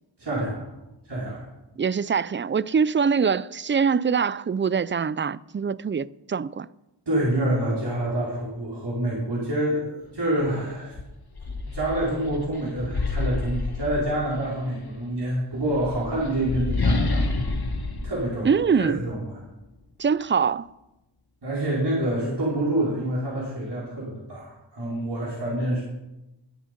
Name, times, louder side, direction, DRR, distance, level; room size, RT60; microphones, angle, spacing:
voice 1, 0.2-0.7 1.0-1.5 7.1-9.8 10.1-10.9 11.4-17.2 18.0-18.5 18.8-19.4 21.4-25.8, right 1 dB, 65° right, 4.5 m, -27 dB
voice 2, 1.8-6.7 18.4-19.0 20.0-20.7, right 6 dB, 30° right, 0.4 m, -23 dB
sound 1, 10.4-10.5 10.9-14.6 15.5-19.2, left 3 dB, 55° left, 1.6 m, -29 dB
21.0 x 7.6 x 5.2 m
wide cardioid pair, 50°, 44 cm